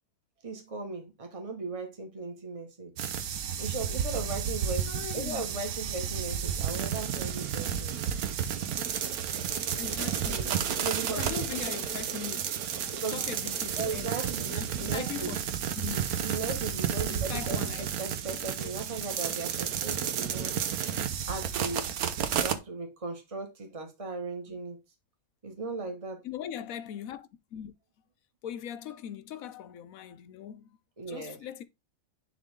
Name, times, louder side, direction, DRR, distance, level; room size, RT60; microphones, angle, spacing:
voice 1, 0.4-2.9 3.6-7.9 10.8-11.3 13.0-13.2 13.8-15.3 16.2-17.7 18.0-20.6 21.3-22.0 22.3-24.8 25.4-26.2 31.0-31.4, right 3 dB, 25° right, 1.7 m, -37 dB
sound 1, 3.0-22.6, right 8 dB, 90° right, 1.3 m, -32 dB
voice 2, 4.9-5.4 9.7-10.7 11.2-12.4 12.8-14.1 14.5-15.4 15.7-16.1 17.1-17.9 24.5-24.6 26.2-27.7 28.4-30.8 31.1-31.6, left 9 dB, 75° left, 1.1 m, -40 dB
10.5 x 3.6 x 3.7 m
omnidirectional pair, 1.5 m